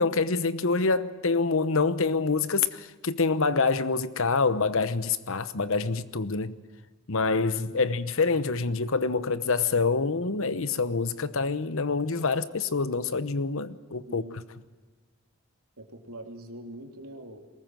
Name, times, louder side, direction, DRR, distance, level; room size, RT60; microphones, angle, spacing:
voice 1, 0.0-6.5 7.1-14.2, left 4 dB, 65° left, 1.0 m, -26 dB
voice 2, 14.0-14.4 15.8-17.4, right 1 dB, 85° right, 3.1 m, -43 dB
22.5 x 19.5 x 7.7 m
head